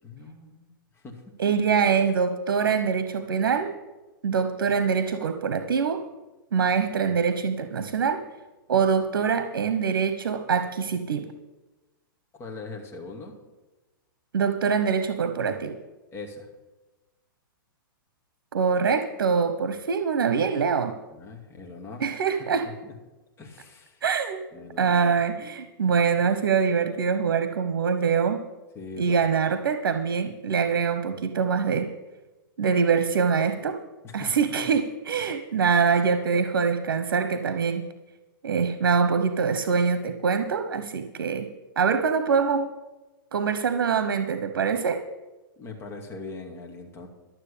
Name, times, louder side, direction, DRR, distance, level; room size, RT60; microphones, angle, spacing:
voice 1, 0.0-1.5 12.3-13.3 16.1-16.5 21.1-22.1 22.6-22.9 23.4-24.0 24.5-25.2 28.7-29.2 34.0-34.3 45.6-47.1, left 3 dB, 20° left, 1 dB, 2.3 m, -41 dB
voice 2, 1.4-3.7 4.2-6.1 6.5-8.2 8.7-11.3 14.3-15.8 18.5-21.0 22.0-22.7 24.0-24.4 24.8-28.4 29.0-31.9 32.6-33.8 34.1-37.9 38.4-41.5 41.8-42.7 43.3-45.0, right 6 dB, 90° right, 10 dB, 1.0 m, -24 dB
12.5 x 7.3 x 8.5 m, 1.1 s
hypercardioid pair, 140°, 12 cm